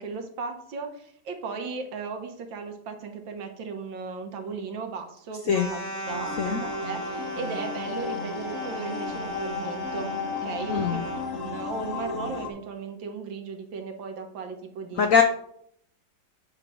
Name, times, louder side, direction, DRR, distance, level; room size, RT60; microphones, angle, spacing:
voice 1, 0.0-15.1, right 4 dB, 80° right, 5 dB, 1.8 m, -36 dB
sound 1, 5.5-11.3, right 1 dB, 10° left, 1.5 m, -37 dB
sound 2, 6.1-12.5, left 5 dB, 50° left, 1.4 m, -34 dB
voice 2, 10.7-11.0 15.0-15.2, left 6 dB, 75° left, 6 dB, 0.7 m, -22 dB
8.4 x 3.4 x 6.2 m, 0.69 s
omnidirectional pair, 2.0 m